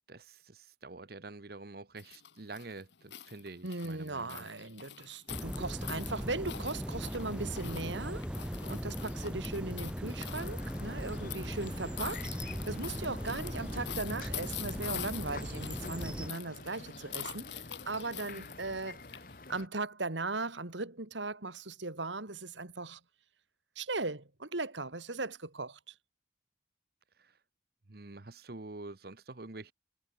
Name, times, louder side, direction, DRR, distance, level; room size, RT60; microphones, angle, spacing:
voice 1, 0.1-4.5 27.2-27.3 27.9-29.7, right 2 dB, 55° right, 1.1 m, -47 dB
sound 1, 2.0-19.6, left 10 dB, 70° left, 1.3 m, -46 dB
voice 2, 3.6-19.0 19.5-23.0 23.8-25.9, right 3 dB, 80° right, 2.6 m, -38 dB
sound 2, 5.3-16.3, equal, 5° right, 2.2 m, -39 dB
sound 3, 10.3-19.7, left 3 dB, 45° left, 2.5 m, -49 dB
head